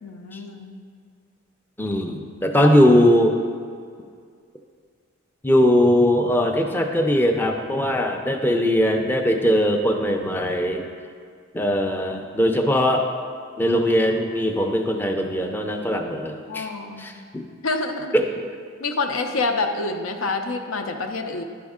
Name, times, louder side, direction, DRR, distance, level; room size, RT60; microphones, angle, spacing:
voice 1, 0.0-0.8 2.6-2.7 16.5-17.1 17.6-18.2 18.8-21.4, left 3 dB, 85° left, 5 dB, 0.6 m, -27 dB
voice 2, 1.8-3.4 5.4-10.9 11.5-13.1 13.6-16.7 17.0-17.5 18.1-18.3, equal, 10° left, 3 dB, 0.4 m, -20 dB
10.0 x 5.1 x 3.6 m, 2.1 s
head